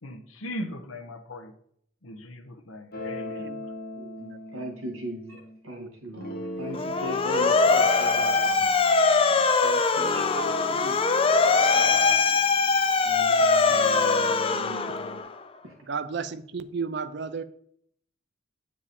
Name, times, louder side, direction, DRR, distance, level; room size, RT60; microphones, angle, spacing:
voice 1, 0.0-1.5 2.0-3.5, left 1 dB, 85° left, 5 dB, 1.0 m, -39 dB
sound 1, 2.9-5.6 6.1-9.5 9.9-13.1 13.6-15.2, left 1 dB, 45° left, 1.5 m, -40 dB
voice 2, 3.3-3.7 4.0-4.4 5.8-5.9 10.3-11.0 15.9-17.4, right 5 dB, 55° right, 11 dB, 0.5 m, -34 dB
voice 3, 4.2-8.9 9.6-10.4 11.7-12.2 13.0-13.6 14.5-15.0 15.6-15.7, equal, 85° right, 2 dB, 2.1 m, -39 dB
Motor vehicle (road) / Siren, 6.7-15.3, left 4 dB, 25° left, 0.4 m, -22 dB
8.7 x 4.8 x 4.3 m, 0.67 s
head